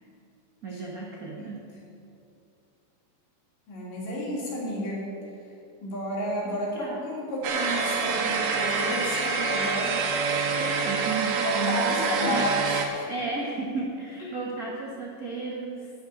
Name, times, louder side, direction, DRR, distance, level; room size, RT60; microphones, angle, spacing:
voice 1, 0.6-1.7 6.4-7.1 10.6-12.4 13.0-16.1, right 3 dB, 65° right, -3 dB, 0.9 m, -34 dB
voice 2, 3.7-5.1 5.8-10.0 11.4-13.1 14.3-14.4, equal, 75° left, -4 dB, 4.7 m, -31 dB
sound 1, 7.4-12.9, right 4 dB, 80° right, 2.8 m, -26 dB
12.0 x 6.4 x 9.5 m, 2.6 s
omnidirectional pair, 3.9 m